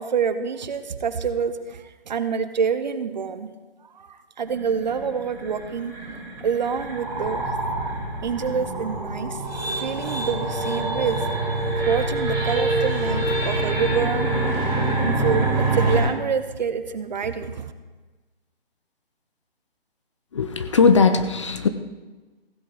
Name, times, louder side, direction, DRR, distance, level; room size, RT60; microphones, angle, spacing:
voice 1, 0.0-3.5 3.9-5.9 6.4-7.4 8.2-9.4 9.8-11.2 11.9-14.3 15.0-17.7, right 6 dB, 45° right, 11 dB, 0.9 m, -27 dB
sound 1, 4.4-16.0, right 2 dB, 10° right, 5.2 m, -26 dB
voice 2, 20.3-21.7, left 5 dB, 30° left, 9 dB, 0.5 m, -18 dB
16.0 x 8.4 x 5.0 m, 1.2 s
figure-of-eight pair, 150°, 30 cm